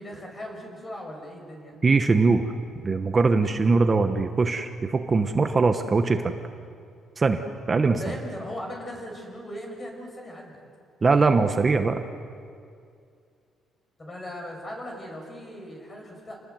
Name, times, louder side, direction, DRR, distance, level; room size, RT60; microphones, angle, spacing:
voice 1, 0.0-1.8 7.8-10.6 14.0-16.3, left 1 dB, 20° left, 1 dB, 5.8 m, -38 dB
voice 2, 1.8-2.4 2.8-6.3 7.2-8.0 11.0-12.0, right 4 dB, 25° right, 7 dB, 1.0 m, -21 dB
29.5 x 20.0 x 8.0 m, 2.3 s
cardioid pair, 165°, 0 cm